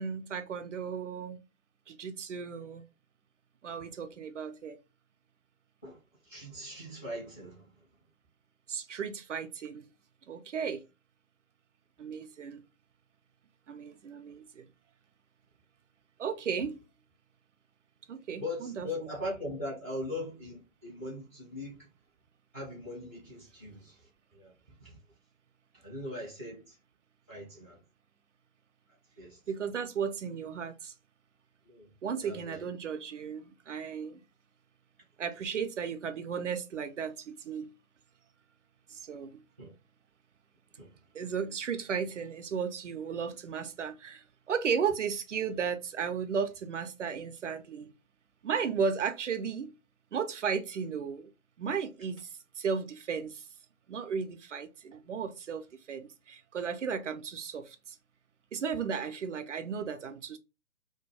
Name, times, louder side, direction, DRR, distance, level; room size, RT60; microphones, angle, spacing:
voice 1, 0.0-1.4 1.9-2.8 3.6-4.8 8.7-9.9 10.3-10.8 12.0-12.6 13.7-14.7 16.2-16.8 18.1-18.9 29.5-30.9 32.0-34.2 35.2-37.7 38.9-39.4 41.1-47.9 48.4-49.7 50.1-51.3 51.6-53.5 53.9-57.8 58.5-60.4, right 6 dB, 60° right, 0.5 m, -35 dB
voice 2, 5.8-7.7 18.4-21.9 22.5-24.5 24.8-25.0 25.7-26.8 27.3-27.8 29.2-29.4 31.6-31.9 32.2-32.7 39.6-39.7 40.8-40.9, left 1 dB, 10° left, 0.4 m, -40 dB
2.2 x 2.1 x 3.0 m
figure-of-eight pair, 125°, 42 cm